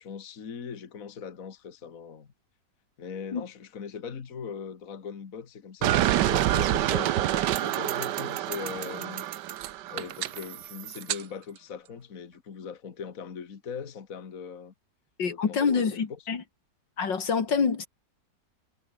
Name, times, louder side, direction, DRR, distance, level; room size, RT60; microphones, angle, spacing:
voice 1, 0.0-2.3 3.0-9.3 9.9-14.7 15.3-16.0, left 6 dB, 50° left, 2.0 m, -40 dB
sound 1, 5.8-11.2, right 13 dB, 75° right, 1.4 m, -27 dB
voice 2, 15.2-16.4 17.0-17.9, left 5 dB, 80° left, 3.0 m, -26 dB
omnidirectional pair, 1.9 m